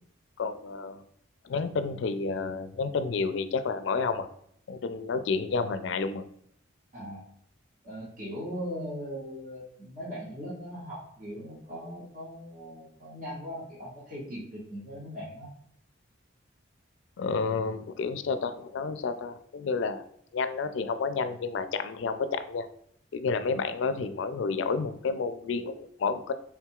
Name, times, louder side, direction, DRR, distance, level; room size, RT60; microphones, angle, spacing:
voice 1, 0.4-1.0 1.4-4.3 4.7-6.3 17.2-20.1 20.3-22.7 23.1-26.3, left 4 dB, 70° left, 11 dB, 0.4 m, -30 dB
voice 2, 6.9-7.2 7.8-15.5, equal, 40° right, -7 dB, 1.1 m, -39 dB
3.5 x 2.3 x 4.5 m, 0.68 s
head